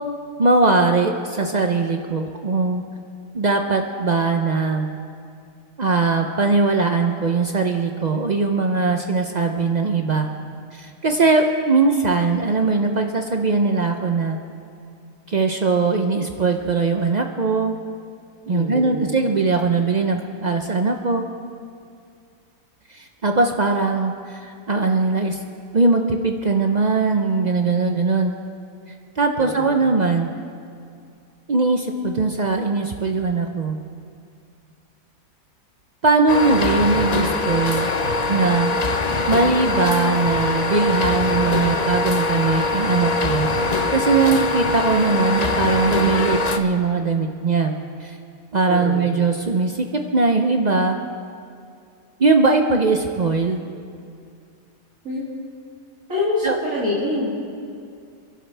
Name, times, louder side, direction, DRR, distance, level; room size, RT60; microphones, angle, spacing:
voice 1, 0.4-2.8 3.3-4.9 5.8-10.3 10.7-14.4 15.3-17.7 18.5-21.2 22.9-25.4 25.7-28.3 29.2-30.3 31.5-33.8 36.0-37.9 38.3-38.7 39.3-47.7 48.0-48.2 48.5-51.0 52.2-53.7 56.4-56.6, right 3 dB, 85° right, 4 dB, 0.3 m, -20 dB
voice 2, 18.5-19.0 29.4-29.7 48.7-49.0 55.0-55.3 56.1-57.3, left 2 dB, 50° right, -10 dB, 3.2 m, -25 dB
sound 1, 36.3-46.6, left 3 dB, 80° left, 0.3 m, -22 dB
29.0 x 11.5 x 3.4 m, 2.4 s
omnidirectional pair, 1.8 m